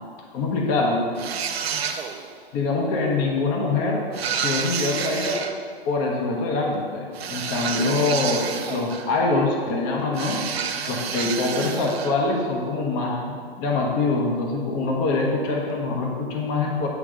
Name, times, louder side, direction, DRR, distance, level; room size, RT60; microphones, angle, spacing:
voice 1, 0.3-1.1 2.5-4.1 4.4-5.4 5.8-10.4 10.9-16.9, left 3 dB, 35° left, -1 dB, 1.1 m, -24 dB
sound 1, 1.2-2.3 4.1-5.5 7.1-9.2 10.1-12.2, right 7 dB, 85° right, 0.6 m, -29 dB
8.2 x 3.4 x 5.1 m, 2.1 s
hypercardioid pair, 125°, 30 cm